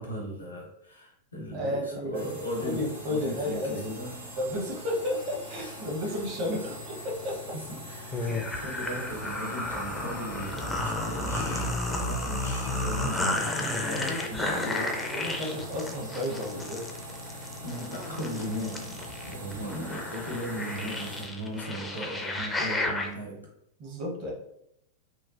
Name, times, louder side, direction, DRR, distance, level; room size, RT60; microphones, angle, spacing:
voice 1, 0.0-4.3 5.5-5.8 6.0-6.2 7.5-15.2 17.6-23.5, equal, 85° left, -3 dB, 0.8 m, -38 dB
voice 2, 1.5-2.3 2.6-3.8 4.4-7.6 13.8-14.7 15.1-16.9 23.8-24.3, left 1 dB, 40° right, -2 dB, 0.8 m, -32 dB
sound 1, 2.1-21.2, equal, 75° right, 0.8 m, -42 dB
sound 2, 8.1-23.1, left 2 dB, 10° left, 0.4 m, -32 dB
3.0 x 2.0 x 2.5 m, 0.77 s
figure-of-eight pair, 90°, 0 cm